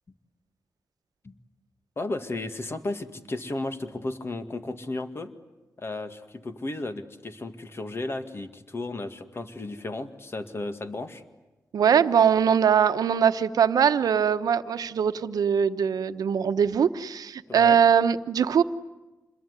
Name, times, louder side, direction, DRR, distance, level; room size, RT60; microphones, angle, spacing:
voice 1, 2.0-5.3 5.8-11.2 17.5-17.8, left 2 dB, 40° left, 8 dB, 2.1 m, -34 dB
voice 2, 11.7-18.6, right 7 dB, 90° right, 10 dB, 1.0 m, -22 dB
27.5 x 22.0 x 9.8 m, 1.1 s
cardioid pair, 80°, 6 cm